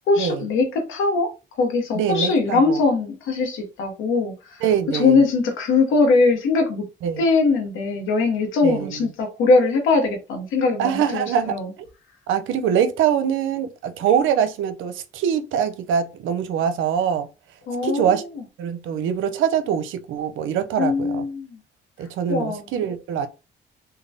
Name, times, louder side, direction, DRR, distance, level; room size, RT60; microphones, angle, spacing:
voice 1, 0.1-1.3 1.6-4.6 4.9-6.8 7.2-11.7 17.7-18.2 20.8-21.6 22.3-22.6, left 3 dB, 85° left, 0.8 m, -21 dB
voice 2, 1.9-2.8 4.6-5.2 7.0-7.2 8.6-9.1 10.8-11.6 12.3-17.3 17.8-18.2 18.6-21.2 22.0-23.3, right 8 dB, 80° right, 0.5 m, -23 dB
3.2 x 2.2 x 2.6 m
cardioid pair, 90°, 20 cm